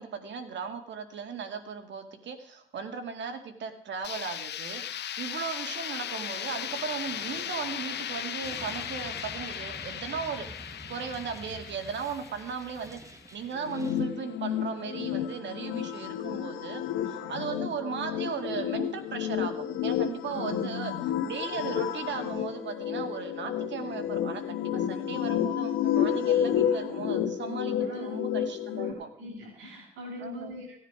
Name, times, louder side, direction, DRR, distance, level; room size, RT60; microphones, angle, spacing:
voice 1, 0.0-10.5 10.9-13.0 13.3-20.9 21.3-29.1 30.2-30.6, right 6 dB, 65° right, 7 dB, 2.1 m, -37 dB
sound 1, 4.0-13.8, left 10 dB, 60° left, 0.8 m, -37 dB
sound 2, 8.4-14.0, right 2 dB, 15° right, 1.4 m, -48 dB
sound 3, 13.5-28.9, left 9 dB, 85° left, 1.4 m, -30 dB
voice 2, 20.3-21.0 27.7-28.1 28.8-30.8, left 2 dB, 85° right, -6 dB, 6.9 m, -41 dB
17.5 x 10.0 x 4.9 m, 0.72 s
cardioid pair, 90°, 20 cm